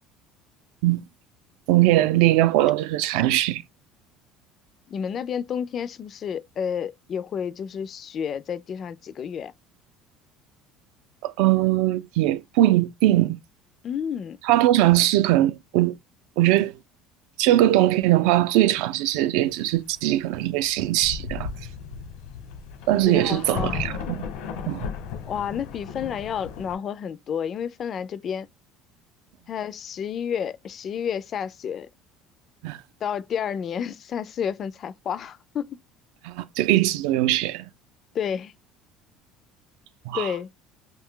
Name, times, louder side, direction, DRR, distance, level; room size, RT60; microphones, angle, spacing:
voice 1, 1.7-3.6 11.2-13.4 14.5-16.0 16.4-16.7 17.4-21.5 22.9-24.2 24.7-24.8 32.6-32.8 36.2-37.7 40.1-40.3, right 15 dB, 75° right, 0.4 m, -21 dB
voice 2, 4.9-9.5 13.8-14.4 23.1-23.8 25.3-28.5 29.5-31.9 33.0-35.8 38.1-38.5 40.1-40.5, left 8 dB, 30° left, 0.3 m, -30 dB
Thunder, 20.6-20.7 21.0-26.7, left 6 dB, 85° left, 0.9 m, -35 dB
2.6 x 2.2 x 3.6 m
cardioid pair, 165°, 0 cm